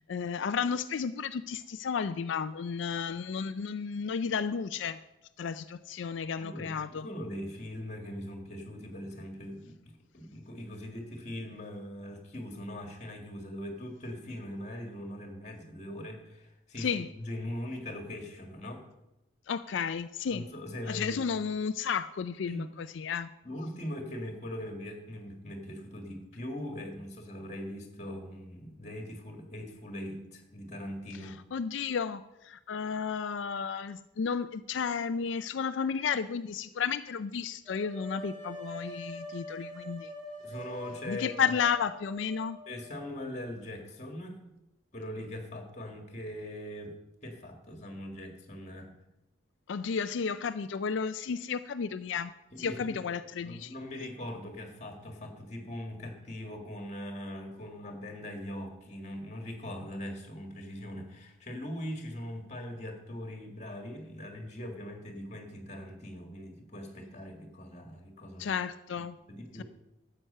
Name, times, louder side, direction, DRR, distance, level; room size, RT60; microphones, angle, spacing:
voice 1, 0.1-5.0 5.4-7.1 16.8-17.1 19.5-20.4 20.9-23.3 31.2-40.1 41.1-42.6 49.7-52.3 52.6-53.7 68.4-69.2, left 6 dB, 65° left, 12 dB, 0.4 m, -33 dB
voice 2, 6.4-18.8 20.3-21.2 22.5-22.7 23.4-31.4 40.4-41.3 42.7-44.4 44.9-46.9 47.2-48.9 52.5-53.0 53.4-68.6 68.9-69.0 69.3-69.6, left 1 dB, 35° left, 4 dB, 1.9 m, -41 dB
sound 1, 37.7-43.5, equal, 25° right, 1.5 m, -45 dB
12.0 x 7.8 x 5.5 m, 0.91 s
head